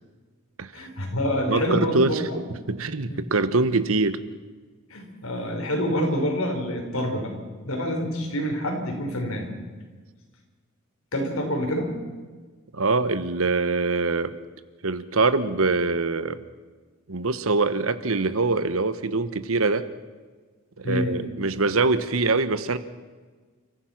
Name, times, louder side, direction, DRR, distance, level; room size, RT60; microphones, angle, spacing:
voice 1, 0.7-2.4 3.1-3.2 4.9-7.3 7.6-9.5 11.1-11.9 20.8-21.1, equal, 90° left, 2 dB, 5.0 m, -27 dB
voice 2, 1.5-4.2 12.7-14.4 14.8-16.4 17.1-19.8 20.8-22.8, right 3 dB, 75° right, 13 dB, 1.2 m, -24 dB
29.5 x 15.0 x 6.0 m, 1.4 s
head